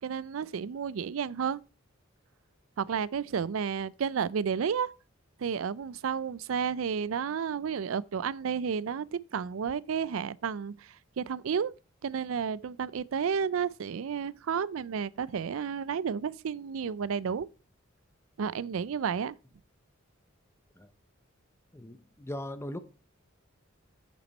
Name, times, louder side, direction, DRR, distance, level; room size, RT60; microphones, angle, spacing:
voice 1, 0.0-1.6 2.8-4.9 5.4-11.7 12.0-17.5 18.4-19.4, right 7 dB, 75° right, 0.4 m, -32 dB
voice 2, 21.7-22.8, left 1 dB, 15° left, 0.8 m, -39 dB
8.3 x 7.2 x 4.1 m
head